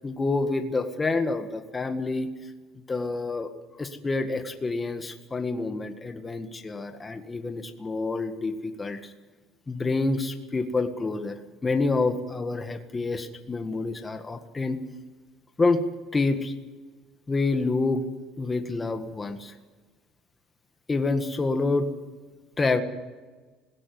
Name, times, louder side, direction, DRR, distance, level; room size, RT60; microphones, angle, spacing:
voice 1, 0.0-2.3 2.9-3.5 3.8-9.1 9.7-11.4 11.6-14.8 15.6-15.8 16.1-16.5 17.3-18.0 18.4-19.5 20.9-21.9 22.6-22.8, left 3 dB, 20° left, 6 dB, 1.7 m, -27 dB
20.5 x 17.0 x 9.6 m, 1.3 s
cardioid pair, 115°, 0 cm